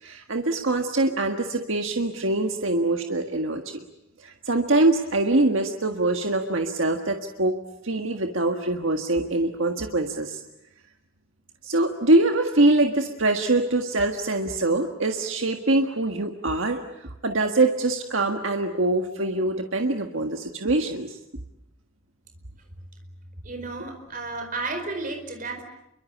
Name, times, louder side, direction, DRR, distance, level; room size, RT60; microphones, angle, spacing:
voice 1, 0.0-3.8 4.2-7.6 7.8-10.4 11.6-21.2, right 2 dB, 70° right, 4 dB, 1.7 m, -24 dB
voice 2, 23.4-25.6, right 3 dB, 40° right, 6 dB, 4.6 m, -32 dB
28.5 x 23.5 x 8.5 m, 0.86 s
head